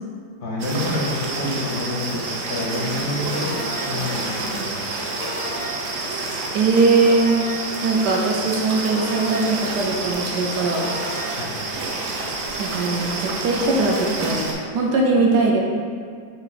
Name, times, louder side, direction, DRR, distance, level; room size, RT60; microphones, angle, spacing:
voice 1, 0.4-4.8 11.4-11.5, left 1 dB, 55° left, -5 dB, 0.7 m, -28 dB
sound 1, 0.6-14.5, right 3 dB, 90° right, 0.7 m, -28 dB
sound 2, 3.4-4.1 5.2-5.9 7.1-7.8 8.9-9.7 10.8-11.4, left 1 dB, 85° left, 1.4 m, -34 dB
voice 2, 6.5-7.4 7.8-10.9 12.6-14.4 14.7-15.5, right 3 dB, 70° right, -1 dB, 1.1 m, -20 dB
5.5 x 2.2 x 3.9 m, 2.1 s
omnidirectional pair, 2.1 m